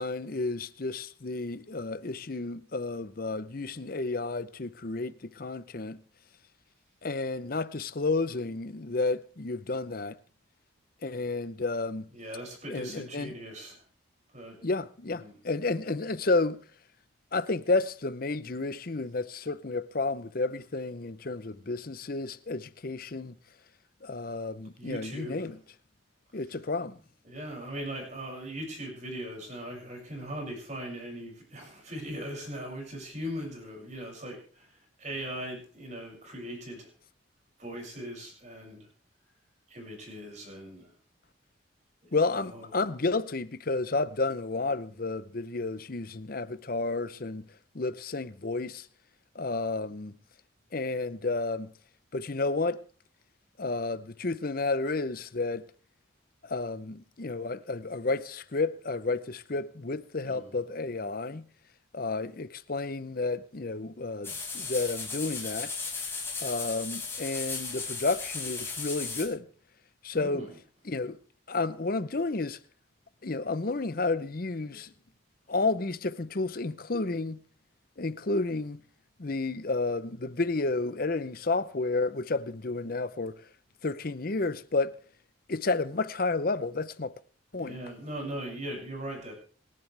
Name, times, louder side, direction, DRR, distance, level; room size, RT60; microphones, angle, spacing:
voice 1, 0.0-6.0 7.0-10.2 11.0-12.1 12.7-13.3 14.6-16.6 17.3-23.3 24.0-25.6 26.3-27.0 42.1-47.5 47.7-48.9 49.3-50.1 50.7-51.7 52.1-52.8 53.6-55.6 56.4-61.4 61.9-65.7 66.4-69.5 70.0-70.5 70.8-71.2 71.5-72.6 73.2-74.9 75.5-77.4 78.0-78.8 79.2-83.4 83.8-85.0 85.5-87.1 87.5-87.8, left 3 dB, 45° left, 0.7 m, -31 dB
voice 2, 12.1-13.8 14.3-14.6 15.1-15.3 24.8-25.3 27.2-36.9 37.6-38.9 39.7-40.9 42.1-42.7 60.2-60.5 70.1-70.5 74.7-74.8 87.6-89.3, right 1 dB, 35° right, 6.7 m, -39 dB
sound 1, 64.2-69.2, left 4 dB, 10° left, 5.6 m, -36 dB
28.0 x 11.0 x 3.4 m
head